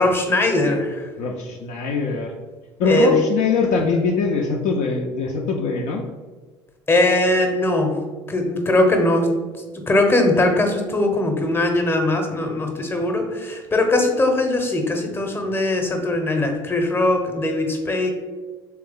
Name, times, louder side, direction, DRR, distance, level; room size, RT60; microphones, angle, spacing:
voice 1, 0.0-1.1 2.8-3.1 6.9-8.0 8.3-9.5 9.9-18.1, left 1 dB, 15° left, 3 dB, 0.8 m, -20 dB
voice 2, 1.2-2.3 2.8-6.0 13.1-13.3, left 4 dB, 60° left, 1 dB, 0.4 m, -22 dB
3.3 x 3.1 x 3.5 m, 1.3 s
figure-of-eight pair, 60°, 14 cm